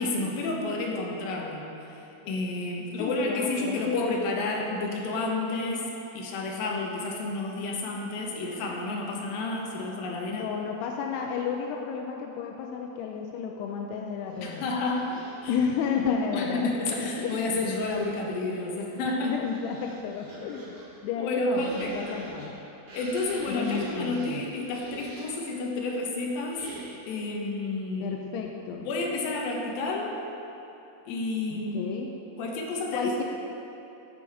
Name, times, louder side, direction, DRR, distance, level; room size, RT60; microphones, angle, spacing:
voice 1, 0.0-5.9 6.1-10.5 14.4-15.2 15.4-15.5 16.3-19.3 21.2-22.2 22.9-26.6 27.1-28.2 28.9-30.1 31.1-31.8 32.4-33.2, left 2 dB, 70° left, -1 dB, 2.8 m, -30 dB
voice 2, 3.0-4.1 10.3-14.7 15.5-16.7 17.3-17.5 19.2-20.8 21.0-22.6 23.5-24.4 28.0-28.9 31.5-32.1 32.9-33.2, left 6 dB, 85° left, 1 dB, 2.6 m, -32 dB
sound 1, 14.3-16.2 17.1-18.3 19.0-25.5 26.5-27.2, right 1 dB, 70° right, 0.8 m, -46 dB
14.5 x 6.3 x 4.8 m, 2.9 s
omnidirectional pair, 4.6 m